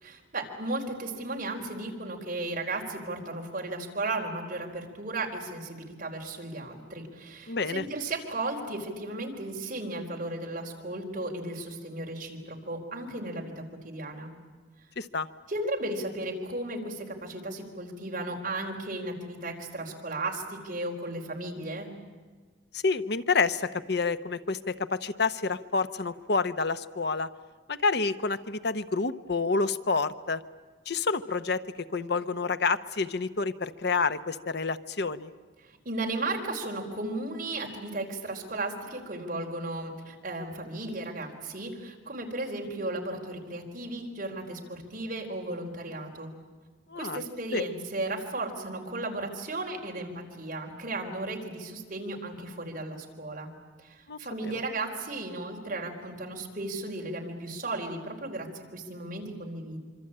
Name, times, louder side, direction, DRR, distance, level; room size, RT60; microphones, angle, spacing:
voice 1, 0.0-14.3 15.5-21.9 35.6-46.3 46.9-53.5 53.8-59.8, right 2 dB, 45° right, 1 dB, 4.3 m, -35 dB
voice 2, 7.5-7.8 15.0-15.3 22.7-27.3 27.7-30.4 30.9-31.6 31.9-35.3 46.9-47.2 47.5-47.7 54.1-54.2 54.4-54.5, left 4 dB, 65° left, 12 dB, 0.9 m, -28 dB
26.0 x 25.5 x 8.8 m, 1.4 s
head